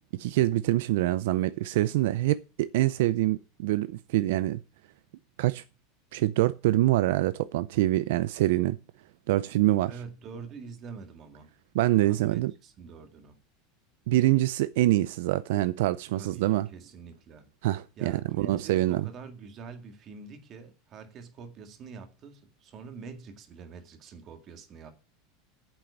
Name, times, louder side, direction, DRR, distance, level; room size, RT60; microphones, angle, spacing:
voice 1, 0.2-4.6 5.4-5.6 6.1-8.8 9.3-9.9 11.7-12.5 14.1-16.7 17.6-19.1, right 16 dB, 70° right, 0.4 m, -25 dB
voice 2, 9.9-11.5 12.0-13.4 16.1-17.5 18.0-24.9, right 5 dB, 30° right, 1.9 m, -45 dB
8.9 x 7.7 x 7.0 m
supercardioid pair, 155°, 0 cm